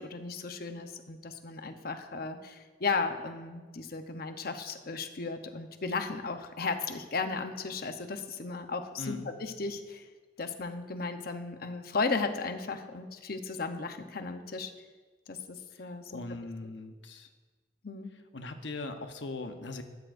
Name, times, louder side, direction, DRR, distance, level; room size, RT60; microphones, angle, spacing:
voice 1, 0.0-10.0 10.4-14.7 15.3-16.1 17.8-18.1, left 4 dB, 55° left, 7 dB, 0.9 m, -35 dB
voice 2, 9.0-9.3 15.8-17.3 18.3-19.8, left 3 dB, 85° left, 6 dB, 1.0 m, -40 dB
15.5 x 13.0 x 2.6 m, 1.3 s
head